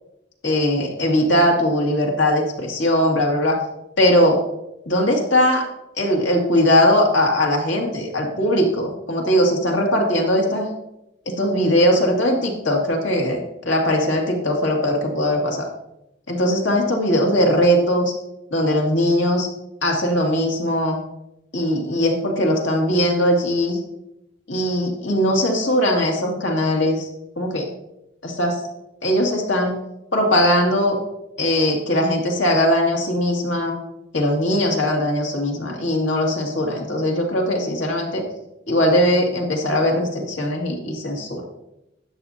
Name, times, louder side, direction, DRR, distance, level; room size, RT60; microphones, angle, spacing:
voice 1, 0.4-3.6 4.0-4.4 4.9-5.7 6.0-10.7 11.3-13.4 13.7-15.7 16.3-18.1 18.5-19.5 19.8-21.0 21.5-23.8 24.5-27.1 27.4-27.7 28.2-28.6 29.0-29.8 30.1-31.0 31.4-33.8 34.1-38.2 38.7-41.4, equal, 80° left, 0 dB, 2.3 m, -20 dB
12.5 x 9.1 x 2.8 m, 0.88 s
head